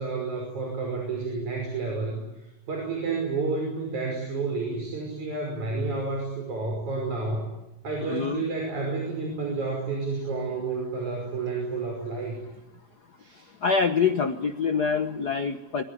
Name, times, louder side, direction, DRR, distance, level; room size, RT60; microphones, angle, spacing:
voice 1, 0.0-2.2 2.7-7.4 7.8-12.4 13.2-13.5, right 3 dB, 85° right, 2 dB, 6.8 m, -30 dB
voice 2, 8.0-8.5 13.6-15.8, left 5 dB, 70° left, 8 dB, 0.9 m, -25 dB
24.0 x 23.5 x 9.7 m, 0.95 s
omnidirectional pair, 3.3 m